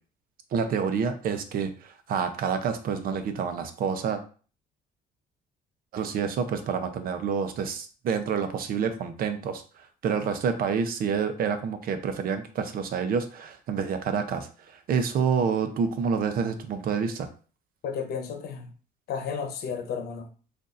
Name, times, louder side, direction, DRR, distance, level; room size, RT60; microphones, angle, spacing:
voice 1, 0.5-4.2 5.9-9.6 10.0-14.5 14.9-17.3, right 6 dB, 60° right, 9 dB, 0.7 m, -28 dB
voice 2, 17.8-18.7 19.1-20.3, left 6 dB, 65° left, 5 dB, 0.9 m, -33 dB
6.5 x 2.6 x 2.6 m, 0.39 s
cardioid pair, 110°, 17 cm